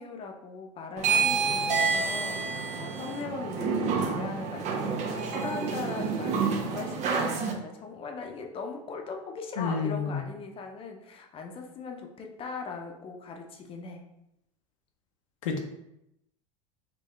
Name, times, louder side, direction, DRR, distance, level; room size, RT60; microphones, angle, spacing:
voice 1, 0.0-14.0, left 4 dB, 35° left, 2 dB, 0.7 m, -39 dB
sound 1, 1.0-7.5, right 5 dB, 45° right, 0.7 m, -28 dB
voice 2, 9.6-10.2 15.4-15.6, left 5 dB, 80° left, 3 dB, 0.8 m, -29 dB
4.5 x 2.7 x 3.3 m, 0.82 s
hypercardioid pair, 100°, 16 cm